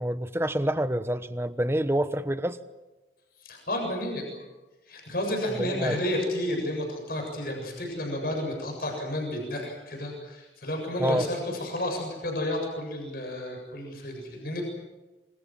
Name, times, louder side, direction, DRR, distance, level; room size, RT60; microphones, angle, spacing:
voice 1, 0.0-2.6 5.6-6.0 11.0-11.3, right 1 dB, 15° right, 12 dB, 1.0 m, -27 dB
voice 2, 3.4-4.3 4.9-14.6, left 1 dB, 55° left, 2 dB, 7.5 m, -31 dB
27.5 x 25.0 x 7.6 m, 1.1 s
head